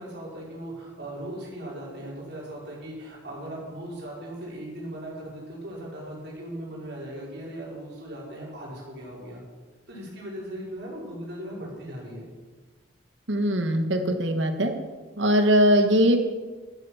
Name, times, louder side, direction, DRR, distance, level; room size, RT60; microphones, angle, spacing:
voice 1, 0.0-9.4 9.9-12.3, right 1 dB, 55° right, -4 dB, 5.1 m, -38 dB
voice 2, 13.3-14.7 15.2-16.2, equal, 70° right, 6 dB, 1.7 m, -21 dB
13.0 x 9.2 x 7.4 m, 1.3 s
head